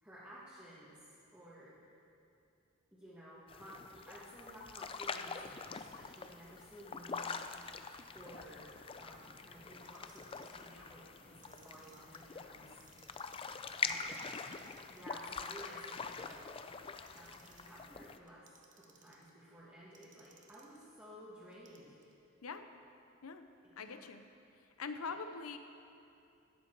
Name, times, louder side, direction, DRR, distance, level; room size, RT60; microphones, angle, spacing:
voice 1, 0.0-1.8 2.9-7.4 8.1-8.7 9.0-12.7 13.8-14.3 14.9-16.4 17.1-18.4 18.7-22.0 23.8-24.1, right 1 dB, 10° right, -9 dB, 1.6 m, -54 dB
sound 1, 3.5-18.2, left 5 dB, 25° left, 0.4 m, -44 dB
Clock, 9.7-10.6 11.3-12.2 12.7-13.6 14.0-15.0 15.5-16.4 16.9-17.8 18.3-19.3 19.9-20.8 21.5-22.1, right 6 dB, 40° right, 0.9 m, -65 dB
voice 2, 23.8-24.2 24.8-25.6, left 5 dB, 85° left, 8 dB, 0.7 m, -43 dB
12.0 x 9.8 x 4.6 m, 2.7 s
head